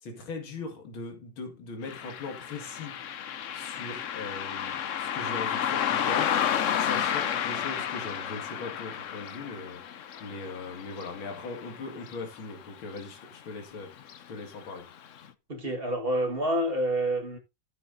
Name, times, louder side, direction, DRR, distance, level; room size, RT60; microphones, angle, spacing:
voice 1, 0.0-3.0 3.5-6.4 6.8-9.8 10.2-14.0 14.3-14.9, left 3 dB, 80° left, 2.9 m, -40 dB
Car passing by, 1.8-12.7 13.0-13.1 14.0-14.2 14.6-14.7 15.2-15.3, left 9 dB, 65° left, 0.7 m, -32 dB
voice 2, 15.5-17.4, right 1 dB, 30° right, 1.7 m, -28 dB
14.0 x 7.7 x 2.7 m
omnidirectional pair, 2.2 m